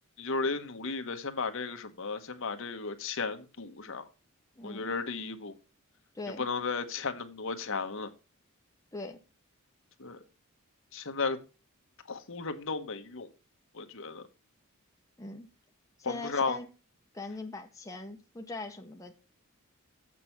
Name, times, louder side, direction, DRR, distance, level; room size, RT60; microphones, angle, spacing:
voice 1, 0.2-4.1 4.6-5.5 6.4-8.1 10.0-10.2 10.9-11.4 12.1-13.3 13.7-14.2 16.0-16.6, left 4 dB, 65° left, 1.1 m, -34 dB
voice 2, 4.6-4.9 6.1-6.5 8.9-9.2 15.2-15.5 16.0-16.7 17.1-19.1, left 2 dB, 15° left, 0.9 m, -41 dB
7.5 x 6.2 x 5.7 m
head